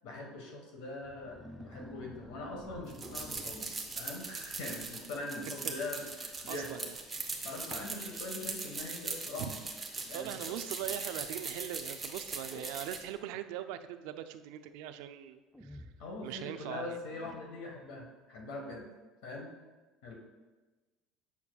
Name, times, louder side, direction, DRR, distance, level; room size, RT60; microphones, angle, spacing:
voice 1, 0.0-3.7 3.9-6.7 7.4-9.5 10.1-10.3 16.0-18.9 19.2-19.5 20.0-20.1, left 2 dB, 80° left, 1 dB, 1.3 m, -42 dB
sound 1, 1.0-4.3 4.9-5.2 5.5-5.9 6.2-6.3 7.1-7.2 7.7-7.8 8.3-8.7 9.6-9.7 12.5-13.5 15.5-16.6 17.1-17.8, equal, 5° left, 0.4 m, -52 dB
sound 2, 2.9-13.0, right 3 dB, 15° right, 0.8 m, -40 dB
voice 2, 6.5-6.9 9.4-9.5 10.1-15.9 16.2-17.0, right 11 dB, 80° right, 10 dB, 0.3 m, -41 dB
7.1 x 5.8 x 2.3 m, 1.2 s
cardioid pair, 130°, 0 cm